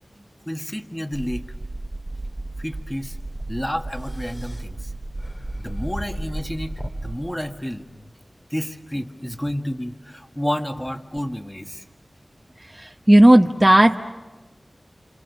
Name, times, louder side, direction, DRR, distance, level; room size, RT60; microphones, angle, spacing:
voice 1, 0.5-1.5 2.6-3.2 3.5-4.9 5.6-7.9 8.5-11.8, equal, 10° left, 5 dB, 1.7 m, -30 dB
sound 1, 1.1-7.2, right 2 dB, 50° right, 0.9 m, -34 dB
sound 2, 3.0-8.1, left 1 dB, 35° left, 2.4 m, -39 dB
voice 2, 12.7-14.0, right 1 dB, 20° right, 3 dB, 1.0 m, -14 dB
28.5 x 27.5 x 7.0 m, 1.2 s
wide cardioid pair, 50°, 0 cm